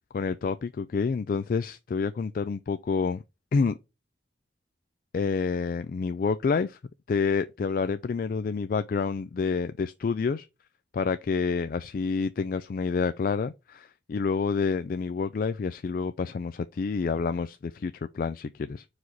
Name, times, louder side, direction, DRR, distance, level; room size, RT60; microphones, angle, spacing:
voice 1, 0.1-3.2 3.5-3.8 5.1-6.8 7.1-10.5 10.9-18.8, left 5 dB, 50° left, 0.3 m, -28 dB
4.9 x 4.0 x 5.8 m
head